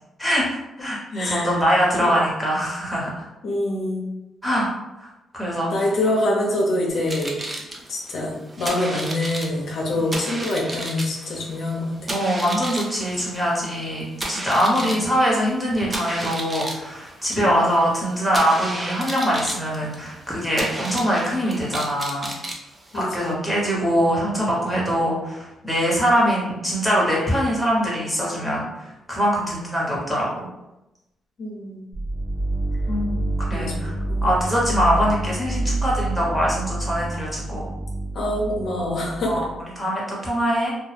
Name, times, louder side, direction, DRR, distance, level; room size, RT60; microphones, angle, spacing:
voice 1, 0.2-3.2 4.4-4.7 5.0-5.1 5.3-5.9 9.9-10.1 12.1-22.3 22.9-30.3 32.9-33.2 33.5-33.9 34.2-37.7 39.2-40.7, equal, 5° right, -5 dB, 1.1 m, -23 dB
voice 2, 1.1-1.5 2.0-2.1 3.4-4.1 5.7-7.4 7.9-12.0 14.7-15.0 17.4-17.7 22.9-23.4 31.4-31.8 33.5-34.3 34.7-34.9 38.1-39.4, left 1 dB, 65° left, -2 dB, 0.6 m, -25 dB
sound 1, 6.9-23.3, right 1 dB, 20° right, 0.5 m, -34 dB
sound 2, 31.9-39.6, right 2 dB, 70° right, 0.7 m, -27 dB
2.3 x 2.2 x 3.3 m, 0.95 s
cardioid pair, 90°, 0 cm